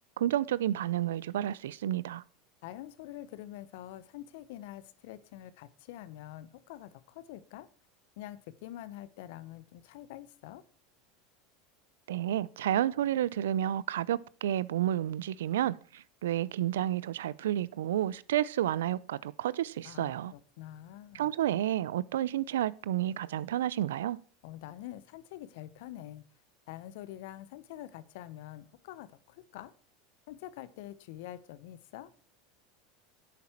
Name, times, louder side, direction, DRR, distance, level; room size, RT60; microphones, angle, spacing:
voice 1, 0.2-2.2 12.1-20.3 21.1-24.2, right 12 dB, 75° right, 0.5 m, -30 dB
voice 2, 2.6-7.7 8.2-10.6 19.8-21.3 24.4-26.2 26.7-29.7 30.3-32.1, left 13 dB, 65° left, 0.9 m, -46 dB
10.5 x 8.6 x 4.5 m
hypercardioid pair, 85°, 0 cm